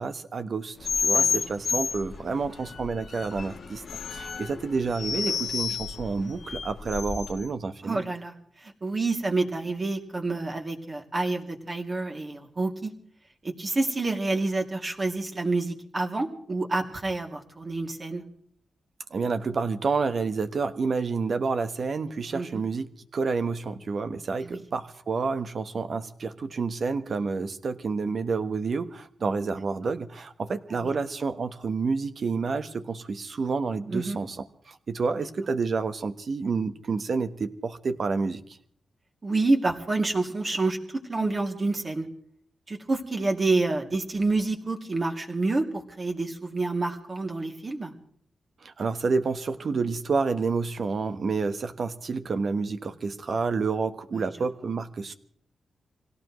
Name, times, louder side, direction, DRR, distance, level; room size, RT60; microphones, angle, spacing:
voice 1, 0.0-3.8 4.1-8.0 19.1-22.9 23.1-38.4 48.6-55.1, right 4 dB, 60° right, 10 dB, 1.2 m, -29 dB
sound 1, 0.8-7.5, left 5 dB, 65° left, 1.2 m, -30 dB
voice 2, 7.8-12.9 13.4-18.2 22.3-22.6 24.4-24.6 30.8-30.9 33.9-34.2 39.2-42.1 42.7-47.9 54.1-54.3, right 3 dB, 35° right, 2 dB, 2.7 m, -28 dB
26.0 x 17.5 x 3.2 m, 0.63 s
cardioid pair, 80°, 0 cm